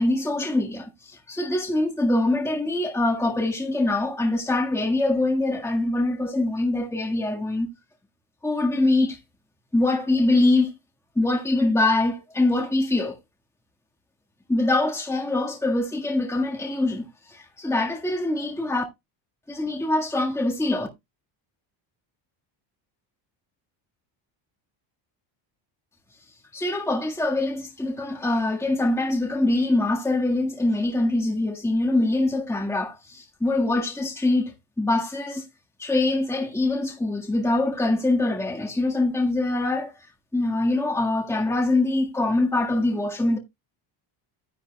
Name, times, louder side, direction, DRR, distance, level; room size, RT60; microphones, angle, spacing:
voice 1, 0.0-7.7 8.4-9.2 9.7-10.7 11.1-13.2 14.5-18.8 19.5-20.9 26.5-35.4 35.8-39.9 40.3-43.4, left 2 dB, 5° left, 1.6 m, -24 dB
11.0 x 10.0 x 2.2 m
cardioid pair, 125°, 49 cm